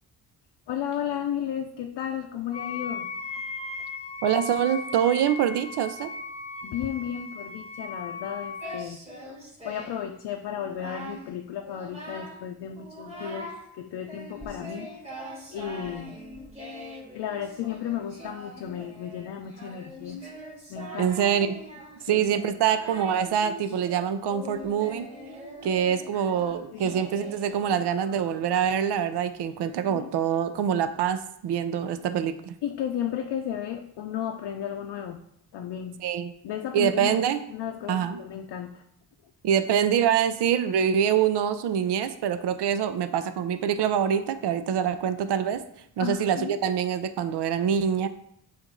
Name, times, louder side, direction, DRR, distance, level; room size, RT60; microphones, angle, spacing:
voice 1, 0.7-3.1 6.6-9.3 9.6-13.5 13.8-14.9 15.5-16.2 17.1-20.2 20.7-21.1 22.0-22.3 25.6-25.7 26.1-26.2 26.7-26.9 29.9-30.1 32.6-35.2 35.5-36.0 36.4-37.1 37.5-38.8 46.0-46.5, left 9 dB, 80° left, 4 dB, 0.6 m, -34 dB
Wind instrument woodwind instrument, 2.5-8.8, left 4 dB, 15° left, 0.4 m, -37 dB
voice 2, 4.2-6.1 21.0-21.6 22.1-25.1 25.6-32.5 36.0-36.3 36.7-37.4 37.9-38.2 39.4-45.6 46.0-48.1, right 8 dB, 70° right, 11 dB, 0.6 m, -25 dB
Singing, 8.6-10.1 10.5-11.3 11.6-12.4 12.8-13.6 14.1-28.6, equal, 15° right, 2.0 m, -42 dB
7.0 x 2.6 x 5.2 m, 0.71 s
cardioid pair, 60°, 41 cm